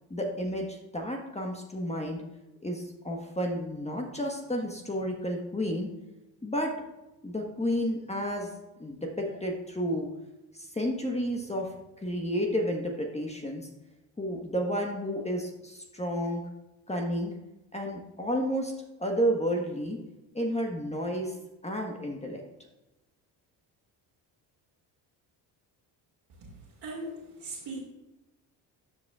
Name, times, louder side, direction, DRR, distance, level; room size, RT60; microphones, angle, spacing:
voice 1, 0.1-2.2 2.6-5.9 6.4-6.7 7.2-8.5 8.8-10.1 10.5-13.6 14.2-16.4 16.9-17.3 17.7-18.7 19.0-20.0 20.3-21.4 21.6-22.4, equal, 15° left, 1 dB, 1.3 m, -31 dB
voice 2, 26.8-27.8, right 2 dB, 55° right, -6 dB, 2.3 m, -38 dB
13.5 x 5.0 x 2.4 m, 0.99 s
supercardioid pair, 70°, 46 cm